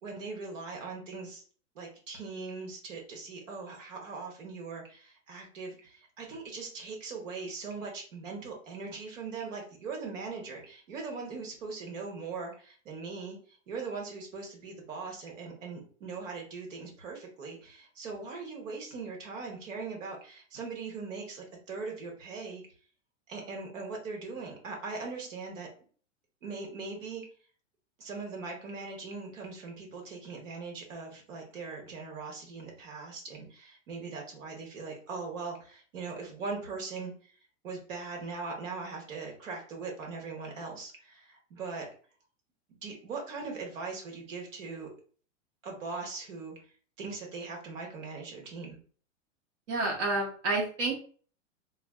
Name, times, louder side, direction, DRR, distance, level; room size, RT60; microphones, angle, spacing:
voice 1, 0.0-1.4 1.7-13.4 13.7-22.6 23.3-25.7 26.4-27.2 28.0-37.3 37.6-41.9 42.7-44.9 45.6-46.6 47.0-48.8, right 4 dB, 80° right, 1 dB, 1.0 m, -40 dB
voice 2, 49.7-50.9, right 2 dB, 60° right, -2 dB, 0.9 m, -29 dB
3.2 x 2.0 x 2.2 m, 0.43 s
hypercardioid pair, 125°, 38 cm